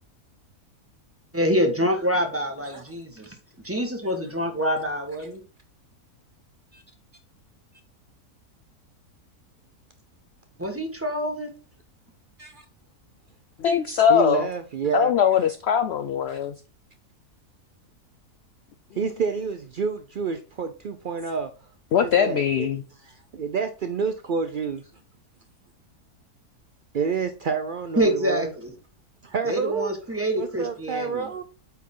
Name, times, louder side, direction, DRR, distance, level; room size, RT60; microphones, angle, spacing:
voice 1, 1.3-3.4 3.6-5.4 10.6-11.5 28.0-28.7 29.4-31.3, equal, 10° right, 1.4 m, -26 dB
voice 2, 13.6-14.5 14.9-16.5 21.9-22.8, left 8 dB, 70° left, 0.6 m, -21 dB
voice 3, 14.1-15.1 16.3-16.4 19.0-21.5 21.9-22.7 23.0-24.8 26.9-28.5 29.2-29.9 30.4-31.4, right 5 dB, 90° right, 0.4 m, -28 dB
8.4 x 4.4 x 3.8 m
omnidirectional pair, 1.7 m